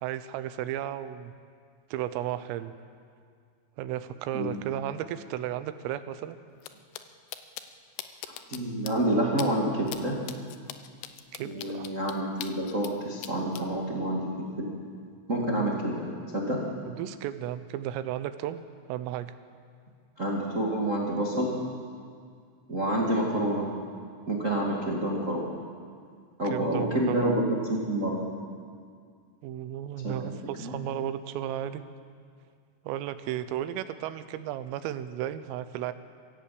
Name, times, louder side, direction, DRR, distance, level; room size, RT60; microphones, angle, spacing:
voice 1, 0.0-1.3 1.9-2.7 3.8-6.4 11.4-11.9 16.9-18.6 18.9-19.3 26.4-27.4 29.4-31.8 32.9-35.9, right 11 dB, 90° right, 11 dB, 3.5 m, -34 dB
sound 1, 6.6-6.7 6.9-7.0 7.3-7.6 8.0-8.6 8.9-9.0 9.4-9.5 9.9-10.0 10.3-12.9 13.2-13.6, left 13 dB, 85° left, 2.3 m, -39 dB
voice 2, 8.5-10.1 11.4-14.7 15.3-16.1 16.3-16.6 20.2-21.6 22.7-23.7 24.3-25.5 26.4-27.4 27.7-28.2 30.0-30.2 30.6-30.8, right 1 dB, 70° right, -2 dB, 0.7 m, -28 dB
22.0 x 16.0 x 8.4 m, 2.1 s
omnidirectional pair, 5.8 m